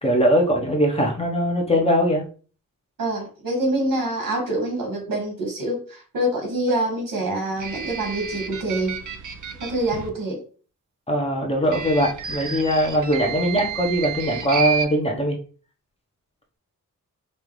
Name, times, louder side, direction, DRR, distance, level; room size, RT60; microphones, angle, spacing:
voice 1, 0.0-2.2 11.1-15.4, equal, 20° left, 0.9 m, -21 dB
voice 2, 3.0-9.0 9.6-10.4, right 1 dB, 90° right, 2.0 m, -25 dB
sound 1, 7.6-10.1 11.6-14.9, right 6 dB, 65° right, 0.7 m, -31 dB
5.4 x 2.5 x 3.2 m
wide cardioid pair, 125°, 33 cm